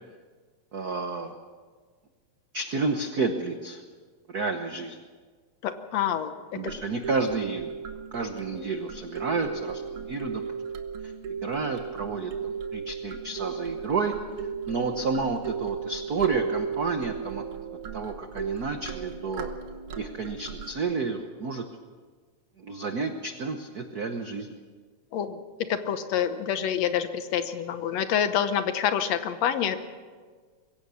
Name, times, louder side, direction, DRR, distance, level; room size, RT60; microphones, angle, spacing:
voice 1, 0.7-1.3 2.5-3.8 4.3-5.0 6.5-7.8 8.1-10.4 11.0-11.1 11.4-12.3 12.7-14.1 14.4-17.4 17.9-19.5 20.0-21.6 22.6-24.6, right 4 dB, 80° right, 6 dB, 0.8 m, -30 dB
voice 2, 5.6-6.3 25.1-25.4 25.7-29.8, left 9 dB, 70° left, 10 dB, 2.1 m, -27 dB
sound 1, 6.7-20.7, right 6 dB, 55° right, 1.6 m, -35 dB
23.0 x 16.5 x 7.0 m, 1.5 s
omnidirectional pair, 3.4 m